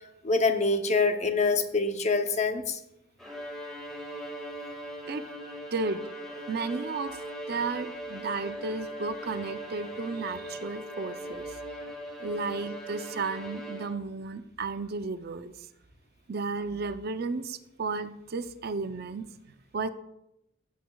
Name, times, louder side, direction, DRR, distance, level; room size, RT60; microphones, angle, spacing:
voice 1, 0.2-2.8, left 3 dB, 35° left, 7 dB, 0.7 m, -25 dB
Bowed string instrument, 3.2-14.2, equal, ahead, 1.8 m, -40 dB
voice 2, 5.7-6.0 6.5-7.2 7.5-11.6 12.2-15.7 16.3-19.3 19.7-19.9, right 4 dB, 55° right, 11 dB, 0.5 m, -33 dB
15.0 x 8.2 x 2.3 m, 0.84 s
head